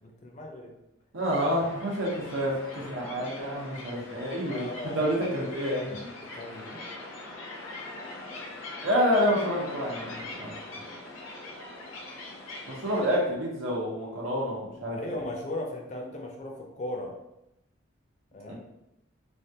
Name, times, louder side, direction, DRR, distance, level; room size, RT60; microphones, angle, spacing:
voice 1, 0.0-0.7 2.0-2.1 4.4-5.1 6.2-6.8 14.9-17.2 18.3-18.5, left 1 dB, 35° left, 1 dB, 0.4 m, -37 dB
voice 2, 1.1-2.5 2.9-4.7 4.9-6.1 8.8-10.6 12.7-15.0 18.5-18.6, equal, 85° right, -3 dB, 0.9 m, -28 dB
sound 1, 1.2-13.2, left 2 dB, 90° left, 0.7 m, -42 dB
3.4 x 2.3 x 2.7 m, 0.88 s
head